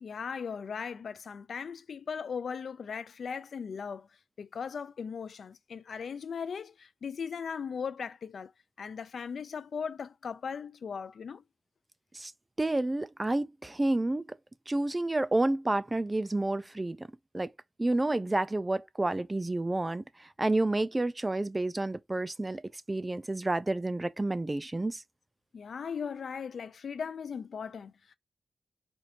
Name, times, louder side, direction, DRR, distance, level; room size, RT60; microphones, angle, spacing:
voice 1, 0.0-4.1 4.4-8.5 8.8-11.4 25.5-28.1, left 6 dB, 55° left, 0.4 m, -38 dB
voice 2, 12.6-14.4 14.7-17.1 17.3-17.5 17.8-22.6 22.9-25.0, right 2 dB, 15° right, 0.3 m, -30 dB
4.4 x 2.6 x 2.8 m
wide cardioid pair, 170°, 0 cm